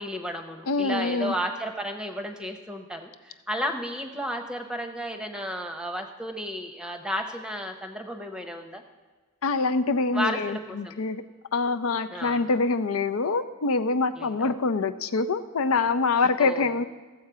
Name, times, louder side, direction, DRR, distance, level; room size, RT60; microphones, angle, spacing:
voice 1, 0.0-8.8 10.1-11.0 12.1-12.4 14.2-14.5 16.4-16.8, equal, 5° right, 5 dB, 0.8 m, -33 dB
voice 2, 0.7-1.3 9.4-11.2 11.5-16.8, left 3 dB, 70° left, 11 dB, 0.5 m, -25 dB
14.5 x 7.4 x 4.8 m, 1.4 s
head